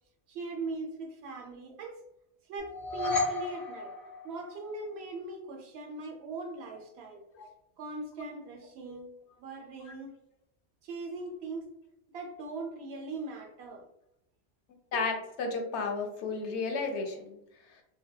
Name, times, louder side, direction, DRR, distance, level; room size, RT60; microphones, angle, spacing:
voice 1, 0.3-2.0 2.5-3.9 4.2-7.2 7.8-9.1 9.4-10.1 10.8-11.7 12.1-13.9, right 2 dB, 75° right, 3 dB, 0.8 m, -40 dB
sound 1, 2.6-4.9, left 3 dB, 35° left, 0.7 m, -33 dB
voice 2, 14.9-17.4, left 4 dB, 90° left, 3 dB, 0.9 m, -32 dB
2.7 x 2.1 x 2.2 m, 0.80 s
omnidirectional pair, 1.1 m